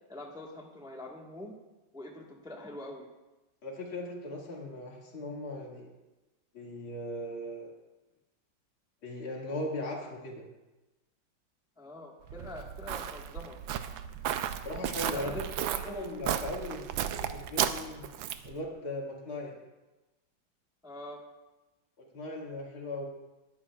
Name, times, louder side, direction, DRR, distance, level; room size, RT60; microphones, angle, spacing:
voice 1, 0.1-1.6 1.9-3.1 11.8-13.6 15.1-16.0 20.8-21.2, left 1 dB, 5° right, -1 dB, 1.1 m, -45 dB
voice 2, 3.6-5.9 6.5-7.7 9.0-10.5 14.6-18.0 18.4-19.5 22.0-23.0, left 1 dB, 85° left, -2 dB, 3.0 m, -38 dB
Walk footsteps, 12.3-18.6, right 10 dB, 75° right, 1.3 m, -34 dB
20.0 x 11.0 x 2.4 m, 1.1 s
omnidirectional pair, 2.3 m